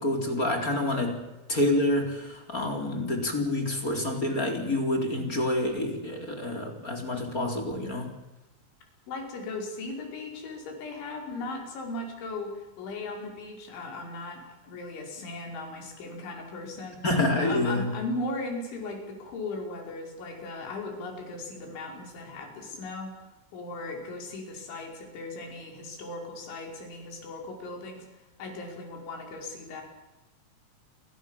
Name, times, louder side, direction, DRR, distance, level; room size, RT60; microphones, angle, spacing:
voice 1, 0.0-8.1 17.0-17.9, left 1 dB, 20° left, 4 dB, 3.9 m, -28 dB
voice 2, 9.1-17.0 17.3-28.1 28.4-29.8, left 2 dB, 65° left, 3 dB, 7.6 m, -37 dB
29.5 x 24.0 x 7.4 m, 0.99 s
omnidirectional pair, 5.9 m